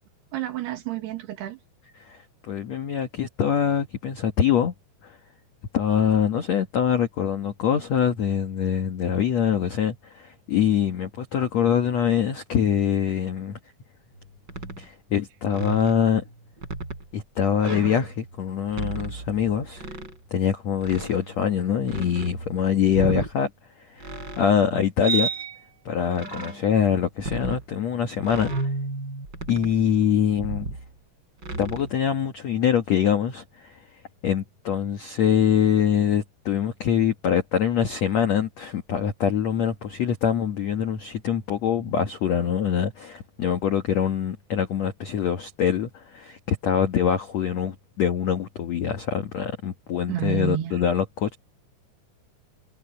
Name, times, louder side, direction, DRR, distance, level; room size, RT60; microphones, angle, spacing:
voice 1, 0.3-1.6 50.1-50.8, right 11 dB, 70° right, 3.8 m, -29 dB
voice 2, 2.0-4.7 5.0-5.2 5.7-13.6 14.8-16.2 17.1-19.9 20.3-23.5 23.9-25.3 25.8-28.5 29.5-30.7 31.6-33.8 34.2-51.4, left 8 dB, 70° left, 1.6 m, -24 dB
sound 1, 14.1-14.2 14.5-14.8 15.5-17.1 17.6-18.4 18.7-20.2 20.8-21.5 21.8-23.3 24.0-24.6 25.0-25.7 26.1-26.7 27.2-27.6 28.2-30.0 30.4-30.9 31.4-31.9, right 3 dB, 25° right, 5.9 m, -33 dB
omnidirectional pair, 5.2 m